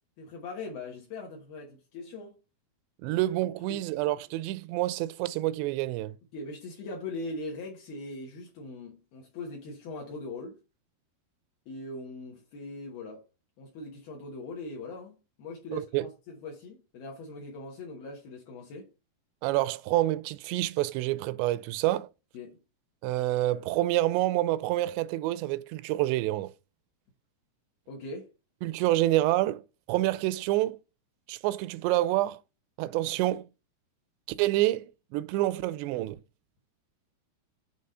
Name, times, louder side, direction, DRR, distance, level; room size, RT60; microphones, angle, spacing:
voice 1, 0.2-2.4 3.1-3.2 3.7-4.0 6.3-10.6 11.7-13.3 13.6-18.9 22.3-22.6 27.9-28.3, left 2 dB, 70° left, 2.9 m, -41 dB
voice 2, 3.0-6.1 15.7-16.1 19.4-22.1 23.0-26.5 28.6-29.6 29.9-30.8 31.3-32.4 32.8-33.4 34.4-34.8 35.1-36.2, right 16 dB, 85° right, 2.7 m, -27 dB
7.7 x 3.5 x 5.5 m
omnidirectional pair, 4.9 m